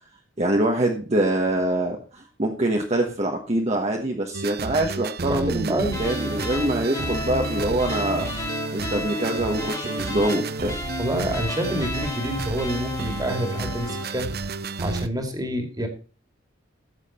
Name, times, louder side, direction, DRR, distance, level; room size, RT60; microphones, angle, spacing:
voice 1, 0.4-8.3 8.7-10.8, right 1 dB, 35° right, 2 dB, 1.3 m, -24 dB
sound 1, 4.3-15.1, right 3 dB, 55° right, 0.7 m, -31 dB
voice 2, 5.3-6.0 11.0-14.3 14.8-15.9, right 1 dB, 20° right, 5 dB, 2.2 m, -27 dB
sound 2, 5.9-14.2, left 3 dB, 15° left, 1.7 m, -34 dB
14.0 x 7.6 x 4.3 m, 0.37 s
head